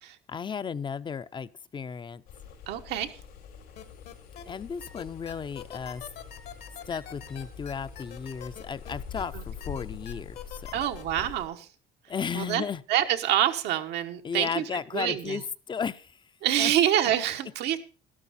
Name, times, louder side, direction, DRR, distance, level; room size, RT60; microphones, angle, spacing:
voice 1, 0.3-2.2 4.5-6.0 6.9-10.8 12.1-12.8 14.2-16.2 16.6-16.7, left 6 dB, 30° left, 15 dB, 0.6 m, -34 dB
sound 1, 2.3-11.5, left 7 dB, 90° left, 4.7 m, -44 dB
voice 2, 2.7-3.2 9.3-9.4 10.7-11.7 12.3-12.6 12.9-15.4 16.4-17.8, right 11 dB, 85° right, 7 dB, 1.2 m, -26 dB
sound 2, 3.8-4.4 4.8-9.2 9.6-11.0, left 10 dB, 70° left, 1.7 m, -43 dB
12.5 x 12.0 x 4.2 m, 0.37 s
cardioid pair, 110°, 17 cm